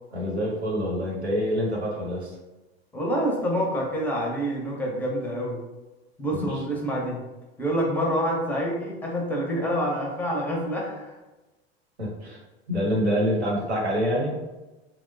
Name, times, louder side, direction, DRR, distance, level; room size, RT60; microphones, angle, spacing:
voice 1, 0.1-2.3 6.3-6.6 12.0-12.4 12.7-14.4, equal, 85° right, -4 dB, 0.9 m, -26 dB
voice 2, 2.9-5.6 6.2-7.2 7.6-11.1, equal, 5° left, -1 dB, 0.5 m, -27 dB
3.0 x 2.1 x 2.5 m, 1.1 s
figure-of-eight pair, 80°, 32 cm